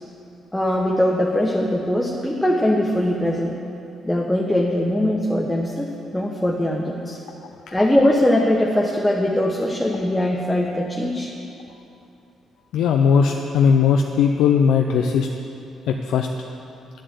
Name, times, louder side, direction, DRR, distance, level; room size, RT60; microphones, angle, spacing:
voice 1, 0.5-3.5 4.0-7.2 7.7-11.3, left 1 dB, 5° left, -2 dB, 1.1 m, -21 dB
voice 2, 12.7-15.3 15.9-16.3, left 6 dB, 85° left, 3 dB, 0.6 m, -18 dB
10.5 x 7.7 x 8.2 m, 2.8 s
cardioid pair, 90°, 0 cm